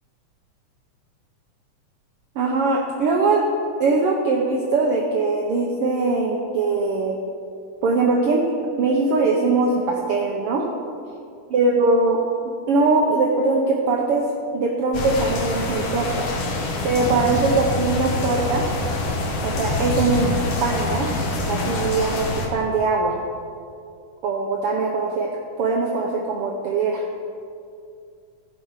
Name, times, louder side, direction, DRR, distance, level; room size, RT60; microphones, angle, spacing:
voice 1, 2.3-3.4 3.8-7.2 7.8-10.6 11.5-12.2 12.7-14.2 14.5-16.3 16.8-18.6 19.4-21.1 21.5-23.2 24.2-25.3 25.6-27.0, right 3 dB, 90° right, 0 dB, 1.2 m, -21 dB
sound 1, 14.9-22.5, left 2 dB, 55° left, 2.0 m, -25 dB
15.5 x 5.8 x 5.8 m, 2.4 s
omnidirectional pair, 3.7 m